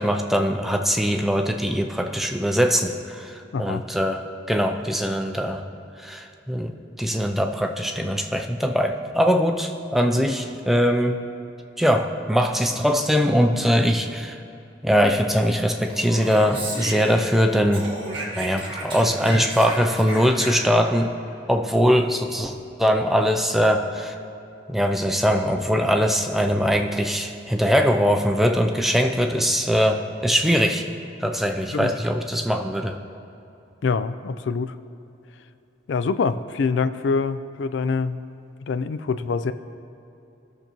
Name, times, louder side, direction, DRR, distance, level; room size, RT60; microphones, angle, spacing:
voice 1, 0.0-5.6 6.0-11.2 11.8-14.4 14.8-17.9 18.4-21.2 21.5-22.5 22.8-24.2 24.7-30.9 31.2-33.0, equal, ahead, 3 dB, 0.4 m, -21 dB
voice 2, 3.5-3.8 31.7-31.9 33.8-34.8 35.9-38.2 38.7-39.5, left 4 dB, 70° left, 12 dB, 0.3 m, -25 dB
Speech, 15.8-17.4 17.7-20.9, right 1 dB, 25° right, 1.7 m, -33 dB
16.0 x 6.7 x 3.0 m, 2.9 s
head